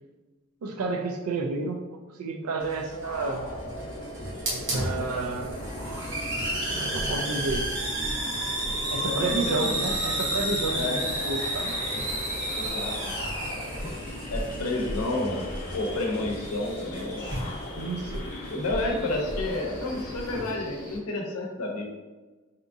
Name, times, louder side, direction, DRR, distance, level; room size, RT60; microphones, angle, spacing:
voice 1, 0.6-3.5 4.5-5.5 6.7-7.7 8.9-11.7 17.8-18.3, right 3 dB, 80° right, 4 dB, 0.4 m, -31 dB
Hiss, 2.6-20.5, right 1 dB, 55° right, 1.0 m, -33 dB
sound 1, 3.0-21.0, left 1 dB, 40° left, 0.7 m, -39 dB
voice 2, 9.0-9.7 10.7-11.0 12.5-13.1 13.7-13.9 14.3-15.4 15.7-17.5 18.5-21.9, left 2 dB, 90° left, 1 dB, 0.6 m, -30 dB
3.5 x 2.8 x 2.6 m, 1.2 s
head